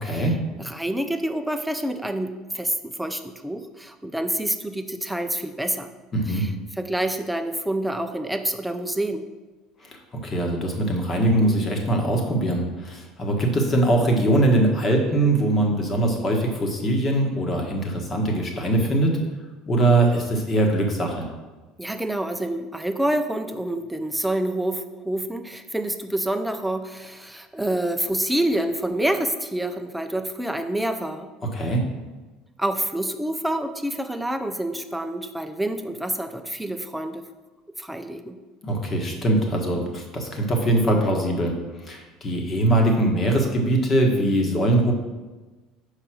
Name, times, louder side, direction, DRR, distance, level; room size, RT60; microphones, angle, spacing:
voice 1, 0.0-0.4 6.1-6.4 10.2-19.2 19.7-21.3 31.5-31.8 38.6-41.5 41.8-44.9, right 1 dB, 25° left, 2 dB, 1.3 m, -22 dB
voice 2, 0.6-5.9 6.3-6.5 6.8-9.2 21.8-31.3 32.6-37.2 37.8-38.4, right 1 dB, 5° right, 7 dB, 0.5 m, -27 dB
5.3 x 4.9 x 6.0 m, 1.3 s
cardioid pair, 130°, 0 cm